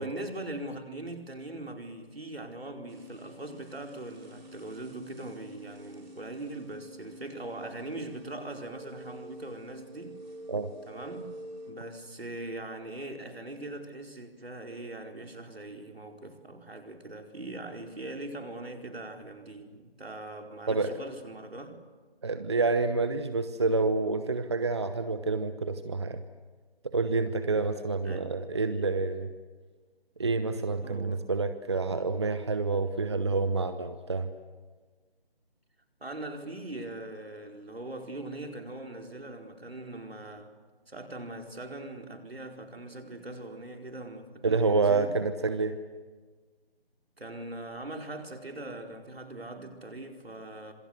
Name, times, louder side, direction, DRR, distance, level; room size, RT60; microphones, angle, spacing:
voice 1, 0.0-10.2 10.9-11.4 11.7-21.8 28.0-28.3 30.8-31.2 36.0-40.5 40.9-45.2 47.2-50.7, right 2 dB, 75° right, 4.7 m, -41 dB
sound 1, 2.9-11.7, right 1 dB, 50° right, 6.7 m, -48 dB
voice 2, 22.2-26.2 26.8-29.3 30.2-34.3 44.4-45.8, right 3 dB, 25° right, 0.8 m, -28 dB
26.5 x 25.0 x 8.0 m
figure-of-eight pair, 160°, 30 cm